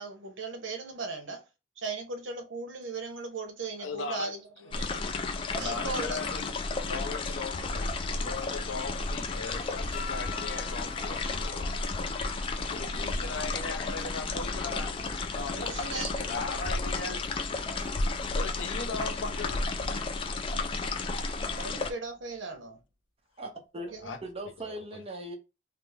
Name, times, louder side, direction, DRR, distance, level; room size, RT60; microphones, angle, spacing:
voice 1, 0.0-1.4 1.8-5.0 5.4-6.2 15.6-16.4 21.5-22.8 23.9-24.3, right 3 dB, 75° right, 0.9 m, -38 dB
voice 2, 3.8-4.3 5.5-6.5 6.8-11.7 12.7-14.9 15.3-15.8 16.3-17.6 18.3-19.7 24.0-24.2 24.6-25.0, left 4 dB, 85° left, 0.5 m, -39 dB
sound 1, 4.7-21.9, left 3 dB, 25° left, 0.3 m, -32 dB
sound 2, 9.5-22.7, left 1 dB, 15° right, 1.0 m, -49 dB
sound 3, 9.9-14.7 15.2-16.9 18.1-18.6, left 6 dB, 45° left, 0.7 m, -48 dB
voice 3, 23.4-25.3, right 1 dB, 30° right, 0.7 m, -40 dB
3.3 x 2.0 x 3.3 m
head